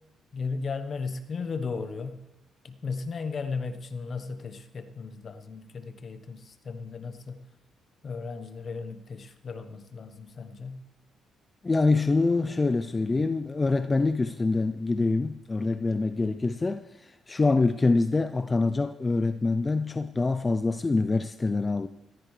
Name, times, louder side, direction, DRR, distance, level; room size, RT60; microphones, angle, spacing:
voice 1, 0.3-2.2 2.6-7.4 8.0-10.8, left 4 dB, 45° left, 1.2 m, -35 dB
voice 2, 11.6-21.9, left 3 dB, 25° left, 0.5 m, -25 dB
18.0 x 14.0 x 3.3 m
cardioid pair, 90°, 0 cm